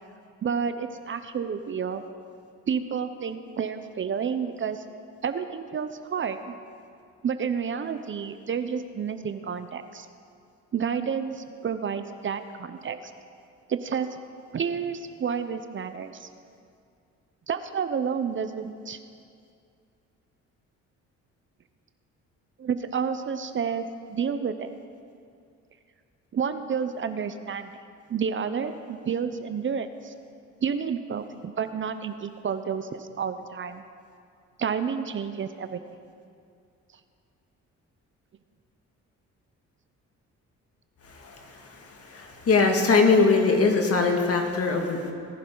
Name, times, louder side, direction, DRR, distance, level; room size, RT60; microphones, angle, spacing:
voice 1, 0.4-2.0 2.7-4.8 5.2-6.5 7.2-10.1 10.7-13.0 13.7-14.1 14.5-16.3 17.5-19.0 22.6-24.7 26.3-27.7 28.1-30.1 30.6-33.8 34.6-35.8, right 6 dB, 40° right, 10 dB, 0.7 m, -30 dB
voice 2, 41.2-41.8 42.1-45.1, left 4 dB, 50° left, 2 dB, 2.0 m, -22 dB
19.0 x 11.0 x 3.9 m, 2.4 s
cardioid pair, 90°, 30 cm